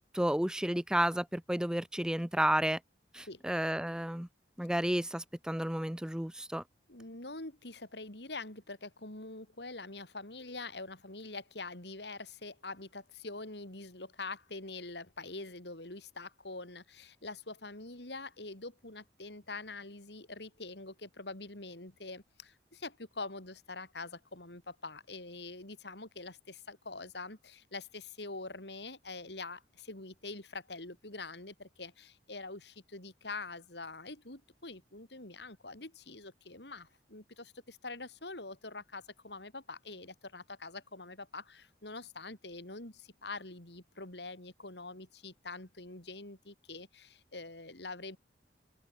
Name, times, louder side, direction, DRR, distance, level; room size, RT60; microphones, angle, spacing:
voice 1, 0.0-2.8 3.1-4.3 4.6-6.6, right 1 dB, 5° right, 0.5 m, -32 dB
voice 2, 6.9-48.2, left 3 dB, 70° left, 4.1 m, -45 dB
open air
head